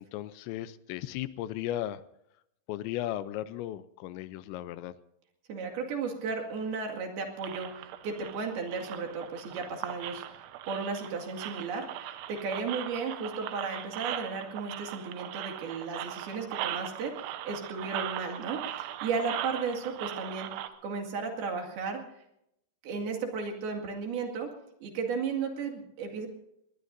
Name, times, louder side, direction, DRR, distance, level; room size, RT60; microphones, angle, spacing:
voice 1, 0.0-2.0 2.7-4.9, left 13 dB, 85° left, 14 dB, 2.9 m, -36 dB
voice 2, 5.5-20.5 20.8-22.0 22.8-24.5 24.8-26.3, right 4 dB, 60° right, 2 dB, 3.9 m, -35 dB
sound 1, 7.4-20.7, right 12 dB, 85° right, 3.3 m, -39 dB
21.0 x 20.5 x 2.6 m, 0.79 s
omnidirectional pair, 5.2 m